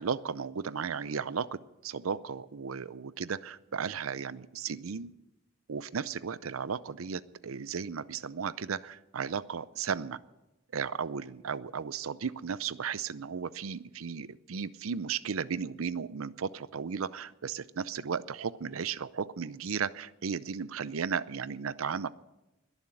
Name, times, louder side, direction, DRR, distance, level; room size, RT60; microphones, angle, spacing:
voice 1, 0.0-5.1 5.7-10.2 10.7-22.1, right 6 dB, 90° right, 17 dB, 0.6 m, -35 dB
21.5 x 7.3 x 7.8 m, 0.97 s
head